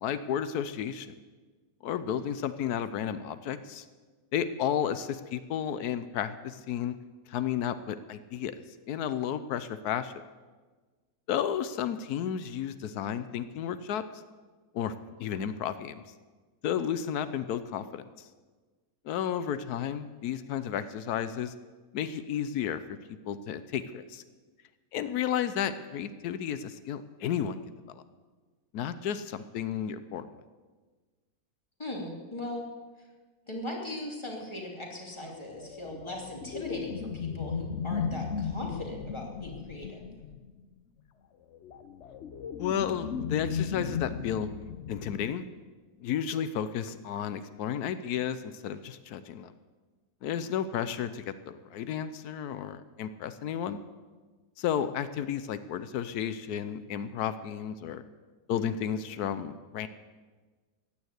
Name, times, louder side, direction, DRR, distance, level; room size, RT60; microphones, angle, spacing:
voice 1, 0.0-1.1 1.8-3.8 4.3-6.9 7.3-8.6 8.9-10.1 11.3-14.0 14.7-14.9 15.2-16.0 16.6-18.3 19.0-21.5 21.9-22.8 23.2-24.2 24.9-27.6 28.7-30.3 42.6-44.5 44.9-45.4 46.0-49.5 50.2-53.8 54.6-58.0 58.5-59.9, left 9 dB, 90° left, 13 dB, 1.2 m, -32 dB
voice 2, 31.8-32.6 33.5-40.0, left 1 dB, 20° left, -1 dB, 2.8 m, -39 dB
sound 1, 35.5-40.6 41.5-45.3, left 7 dB, 55° left, 0.9 m, -36 dB
15.5 x 10.0 x 8.1 m, 1.4 s
omnidirectional pair, 1.6 m